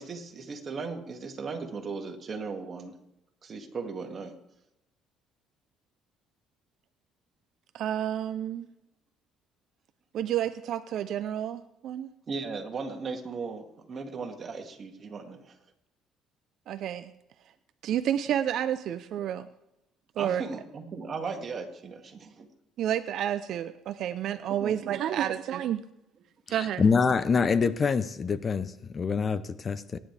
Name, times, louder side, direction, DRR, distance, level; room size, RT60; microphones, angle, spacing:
voice 1, 0.0-2.9 3.4-4.3 12.3-15.6 20.1-22.5 24.5-24.8, right 4 dB, 40° right, 3 dB, 2.2 m, -37 dB
voice 2, 7.7-8.7 10.1-12.1 16.7-17.1 17.8-19.5 20.2-20.4 22.8-25.8 26.5-26.8, right 10 dB, 65° right, 11 dB, 0.6 m, -30 dB
voice 3, 26.5-30.0, left 5 dB, 35° left, 14 dB, 0.7 m, -26 dB
25.0 x 10.5 x 3.4 m, 0.89 s
cardioid pair, 105°, 0 cm